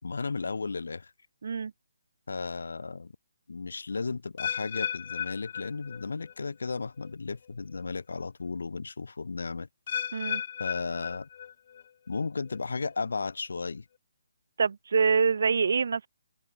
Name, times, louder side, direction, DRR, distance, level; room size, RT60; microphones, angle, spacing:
voice 1, 0.0-1.1 2.3-3.1 3.5-9.7 10.6-11.3 12.1-13.8, left 4 dB, 85° left, 5.0 m, -34 dB
sound 1, 4.4-6.4 6.7-7.1 7.7-7.8 9.9-11.8 12.1-12.6 13.2-13.3, left 8 dB, 40° left, 0.6 m, -35 dB
voice 2, 14.6-16.1, right 5 dB, 60° right, 1.9 m, -25 dB
hypercardioid pair, 170°, 0 cm